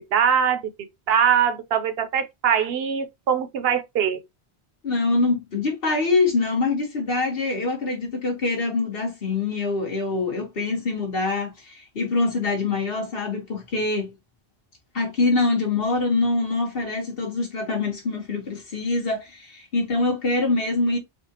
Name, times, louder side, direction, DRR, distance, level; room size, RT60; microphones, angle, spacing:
voice 1, 0.1-0.6 1.1-4.2, right 8 dB, 70° right, 0.8 m, -22 dB
voice 2, 4.8-14.1 14.9-21.0, left 3 dB, 65° left, 1.5 m, -24 dB
4.3 x 2.3 x 2.8 m
omnidirectional pair, 1.1 m